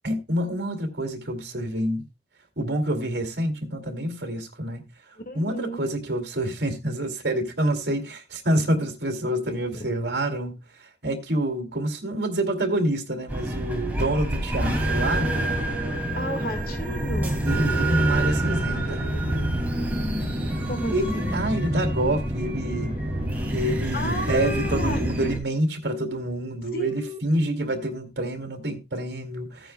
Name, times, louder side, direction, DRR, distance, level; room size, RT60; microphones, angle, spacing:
voice 1, 0.0-2.0 2.6-4.8 5.3-15.3 17.4-19.1 20.9-22.9 23.5-29.7, right 1 dB, 70° right, 2.4 m, -27 dB
voice 2, 5.2-5.9 9.7-9.8 16.1-17.4 20.6-21.3 23.6-25.0 26.7-27.2, left 1 dB, 55° left, 1.8 m, -33 dB
sound 1, 13.3-25.4, right 1 dB, 10° right, 2.4 m, -27 dB
16.0 x 9.2 x 2.2 m
head